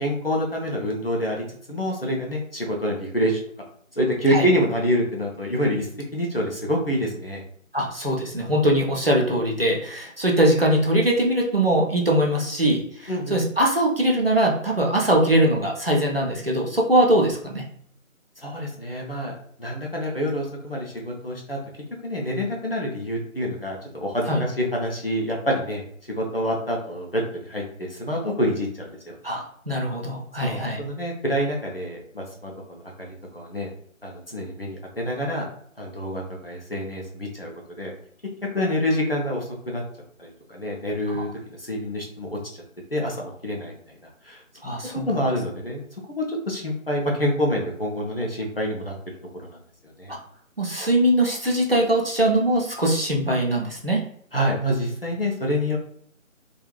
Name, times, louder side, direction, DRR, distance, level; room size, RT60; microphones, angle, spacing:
voice 1, 0.0-3.4 3.9-7.4 13.1-13.4 18.4-21.6 22.0-25.8 26.2-29.2 30.4-33.7 34.0-35.5 35.8-37.5 37.8-37.9 38.5-39.8 40.2-41.3 41.6-42.4 42.9-43.7 44.2-44.8 45.1-45.8 46.1-48.9 50.0-50.1 54.3-55.8, equal, 45° left, -1 dB, 0.5 m, -27 dB
voice 2, 7.7-17.6 24.3-24.4 29.2-30.8 41.1-41.2 44.6-45.1 50.1-50.2 50.6-54.0, right 1 dB, 45° right, -1 dB, 0.5 m, -21 dB
2.4 x 2.1 x 3.0 m, 0.62 s
figure-of-eight pair, 170°, 41 cm